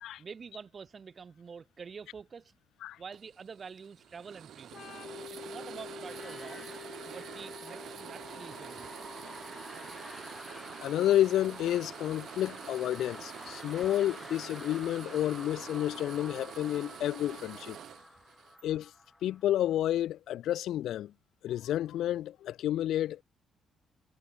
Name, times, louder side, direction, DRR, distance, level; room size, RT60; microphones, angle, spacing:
voice 1, 0.2-2.5 3.0-4.9 5.3-6.7 7.0-9.0, right 5 dB, 40° right, 6.8 m, -47 dB
sound 1, 3.1-18.6, right 10 dB, 70° right, 4.1 m, -47 dB
Organ, 4.7-12.2, left 8 dB, 60° left, 6.6 m, -49 dB
sound 2, 6.0-19.7, left 2 dB, 15° left, 7.7 m, -49 dB
voice 2, 10.8-17.8 18.6-18.9 19.2-21.1 21.4-23.2, left 12 dB, 80° left, 2.9 m, -30 dB
cardioid pair, 90°, 0 cm